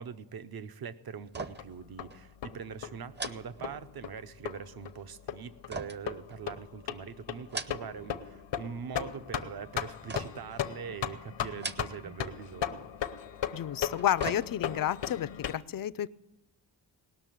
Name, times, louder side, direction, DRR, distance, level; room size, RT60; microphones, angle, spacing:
voice 1, 0.0-12.9, right 7 dB, 55° right, 13 dB, 0.7 m, -42 dB
sound 1, 1.3-1.8 2.1-2.3 3.1-4.2 5.7-6.8 7.3-8.1 8.4-9.0 10.1-10.6 11.5-12.2 12.5-12.6 13.7-14.9 15.3-15.4, right 3 dB, 25° right, 0.6 m, -41 dB
sound 2, 1.6-15.5, left 9 dB, 80° left, 0.9 m, -38 dB
voice 2, 13.5-16.1, left 11 dB, 50° left, 16 dB, 0.4 m, -31 dB
19.0 x 6.5 x 9.1 m, 1.0 s
wide cardioid pair, 130°, 43 cm